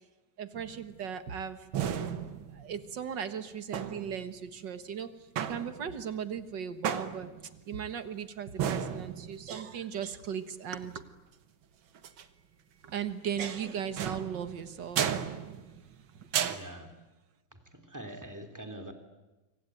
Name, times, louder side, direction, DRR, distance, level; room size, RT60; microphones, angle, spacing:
voice 1, 0.4-1.7 2.5-5.1 5.4-7.3 7.7-11.0 12.8-15.2 16.1-16.3, right 8 dB, 65° right, 11 dB, 2.1 m, -37 dB
sound 1, 0.5-1.1 1.7-3.0 3.7-4.4 5.4-6.1 6.8-7.6 8.6-9.6 12.0-12.2 14.0-16.0 16.3-16.6, right 8 dB, 85° right, 2.0 m, -34 dB
voice 2, 16.4-17.0 17.5-18.9, right 1 dB, 10° right, 8 dB, 3.0 m, -44 dB
25.5 x 25.0 x 9.4 m, 1.1 s
omnidirectional pair, 2.1 m